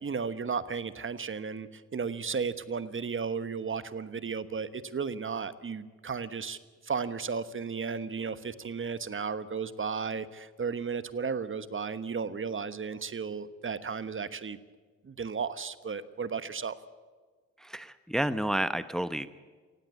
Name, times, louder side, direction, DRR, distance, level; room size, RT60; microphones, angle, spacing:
voice 1, 0.0-6.6 6.8-14.6 15.0-16.8, right 5 dB, 40° right, 14 dB, 1.3 m, -34 dB
voice 2, 17.6-19.3, right 1 dB, ahead, 13 dB, 0.9 m, -30 dB
19.0 x 16.5 x 8.4 m, 1.5 s
supercardioid pair, 60°, 32 cm